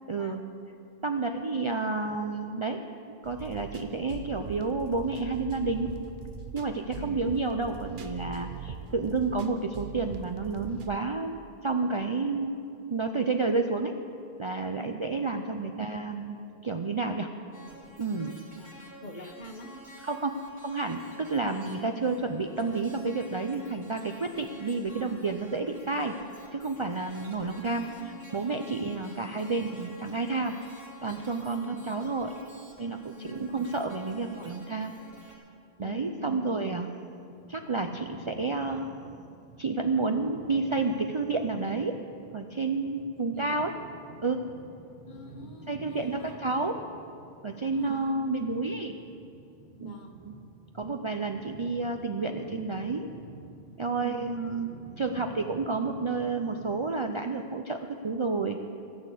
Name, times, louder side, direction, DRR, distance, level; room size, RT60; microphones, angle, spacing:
voice 1, 0.1-0.4 1.0-2.8 3.2-5.9 6.5-12.5 12.9-13.9 14.4-16.4 16.6-17.3 18.0-18.4 20.0-20.4 20.6-26.2 26.5-30.5 31.0-32.3 32.8-33.0 33.3-34.9 35.8-36.9 37.5-38.9 39.6-41.9 42.3-43.7 44.2-44.4 45.7-46.7 47.4-49.0 49.8-49.9 50.2-50.3 50.7-53.1 53.8-54.7 55.0-57.8 58.0-58.6, right 3 dB, 40° right, 4 dB, 0.5 m, -30 dB
sound 1, 3.2-10.9, right 6 dB, 55° right, 0.9 m, -42 dB
voice 2, 6.9-7.2 14.8-15.0 18.6-19.7 27.4-28.0 31.6-31.7 33.1-33.6 35.8-36.5 43.1-43.6 45.1-46.4 47.7-48.3 49.8-50.2 53.9-54.3, equal, 45° left, 4 dB, 1.1 m, -45 dB
sound 2, 17.5-35.4, right 1 dB, 5° right, 2.5 m, -50 dB
sound 3, 37.3-56.8, right 3 dB, 85° right, 2.5 m, -50 dB
15.0 x 6.6 x 8.3 m, 2.6 s
omnidirectional pair, 1.1 m